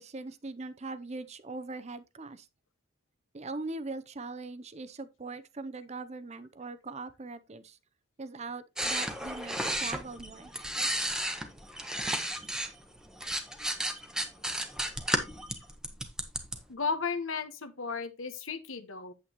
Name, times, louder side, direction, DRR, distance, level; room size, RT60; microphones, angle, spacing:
voice 1, 0.0-2.5 3.3-7.8 8.2-10.5, right 3 dB, 30° right, 0.6 m, -41 dB
sound 1, 8.8-12.7 13.0-16.6, right 1 dB, 5° right, 0.9 m, -33 dB
voice 2, 16.7-19.1, left 5 dB, 70° left, 1.1 m, -34 dB
8.4 x 8.1 x 3.0 m
head